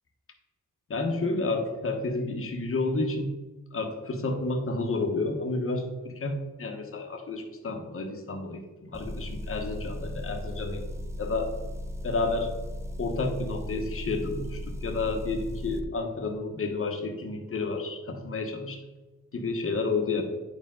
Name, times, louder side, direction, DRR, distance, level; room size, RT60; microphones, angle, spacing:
voice 1, 0.9-3.3 3.7-10.8 11.2-11.5 12.0-12.5 13.0-18.8 19.3-20.2, left 3 dB, 45° left, 3 dB, 1.2 m, -30 dB
Motor vehicle (road) / Engine, 8.9-15.8, left 1 dB, 10° right, 0.7 m, -36 dB
9.7 x 4.7 x 3.8 m, 1.2 s
cardioid pair, 90°, 30 cm